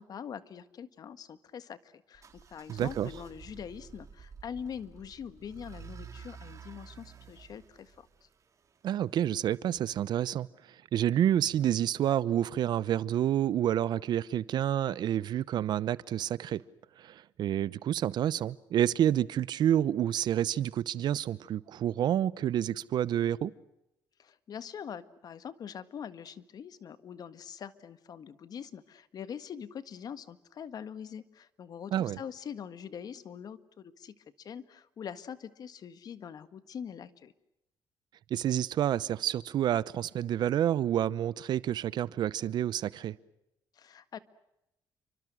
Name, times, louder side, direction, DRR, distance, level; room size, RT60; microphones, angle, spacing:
voice 1, 0.0-2.2 2.5-8.1 24.2-37.3 43.7-44.2, left 7 dB, 55° left, 1.7 m, -43 dB
sound 1, 2.1-9.0, right 6 dB, 45° right, 3.9 m, -50 dB
voice 2, 2.7-3.1 8.8-10.5 10.9-16.6 17.0-23.5 31.9-32.2 38.3-43.2, right 11 dB, 70° right, 0.8 m, -29 dB
29.5 x 25.0 x 6.3 m
cardioid pair, 95°, 8 cm